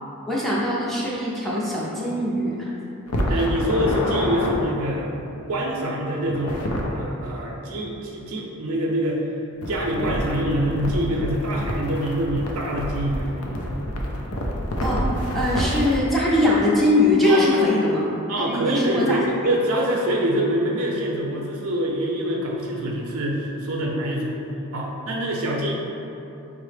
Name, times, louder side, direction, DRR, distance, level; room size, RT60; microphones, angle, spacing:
voice 1, 0.3-2.7 14.8-18.1 18.4-19.2, left 1 dB, ahead, -7 dB, 0.4 m, -21 dB
sound 1, 3.1-4.5 6.3-6.9 9.6-16.0, equal, 80° left, 0.5 m, -27 dB
voice 2, 3.3-5.1 5.5-6.7 6.9-9.2 9.7-13.3 17.2-17.8 18.3-24.3 24.7-25.7, right 1 dB, 75° right, -2 dB, 0.5 m, -25 dB
4.8 x 2.0 x 3.2 m, 2.8 s
head